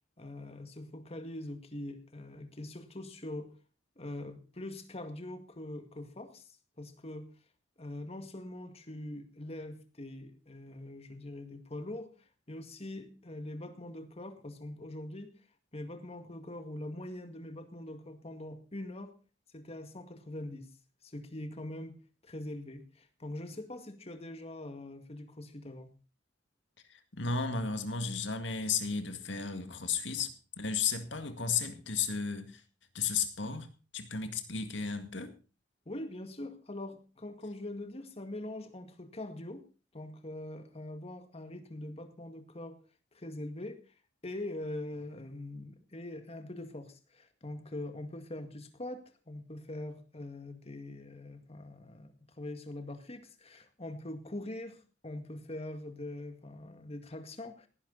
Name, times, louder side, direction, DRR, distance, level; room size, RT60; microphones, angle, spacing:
voice 1, 0.2-3.5 4.0-7.3 7.8-12.2 12.5-15.3 15.7-19.1 19.5-20.7 21.0-22.0 22.2-25.9 35.9-39.7 39.9-42.8 43.1-43.8 44.2-57.7, left 1 dB, 35° left, 2.0 m, -43 dB
voice 2, 26.9-32.6 32.9-33.7 33.9-35.3, left 5 dB, 75° left, 2.2 m, -34 dB
18.0 x 11.0 x 4.1 m
head